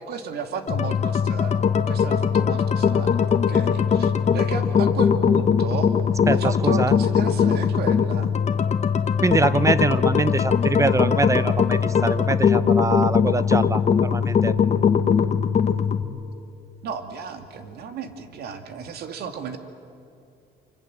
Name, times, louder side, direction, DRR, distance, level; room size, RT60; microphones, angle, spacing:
voice 1, 0.0-8.3 16.8-19.6, right 6 dB, 70° right, 7 dB, 2.3 m, -34 dB
sound 1, 0.7-16.0, left 7 dB, 40° left, 1.4 m, -20 dB
voice 2, 6.3-7.0 9.2-14.5, right 3 dB, 20° right, 16 dB, 0.7 m, -24 dB
26.0 x 25.0 x 7.7 m, 2.5 s
cardioid pair, 110°, 17 cm